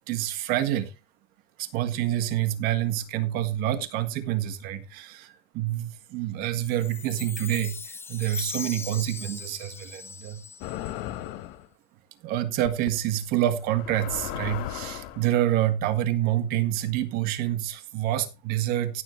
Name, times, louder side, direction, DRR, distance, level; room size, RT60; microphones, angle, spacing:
voice 1, 0.1-0.9 1.6-10.4 12.2-19.0, right 13 dB, 70° right, 1.6 m, -27 dB
Chime, 6.6-11.1, left 5 dB, 15° left, 0.5 m, -39 dB
sound 1, 10.6-11.7 12.7-12.9 13.7-15.3, left 13 dB, 85° left, 1.3 m, -35 dB
16.0 x 7.4 x 3.2 m
cardioid pair, 160°, 16 cm